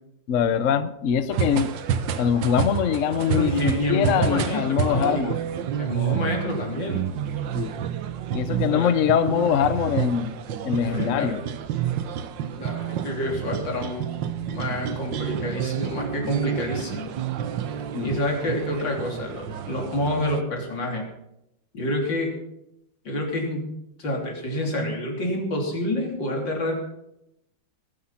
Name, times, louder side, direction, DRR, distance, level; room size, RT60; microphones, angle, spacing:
voice 1, 0.3-1.7 2.2-5.4 7.5-7.7 8.3-10.3 10.6-11.4 17.9-18.1, left 8 dB, 55° left, 12 dB, 1.0 m, -23 dB
sound 1, 1.3-20.4, right 8 dB, 85° right, 1.6 m, -29 dB
voice 2, 3.3-5.4 5.8-7.0 8.7-9.0 10.8-11.4 12.4-14.1 14.5-17.1 18.0-21.0 21.7-22.4 23.1-23.7 24.0-26.7, left 1 dB, 90° left, 0 dB, 4.0 m, -28 dB
19.0 x 10.0 x 5.8 m, 0.82 s
omnidirectional pair, 1.9 m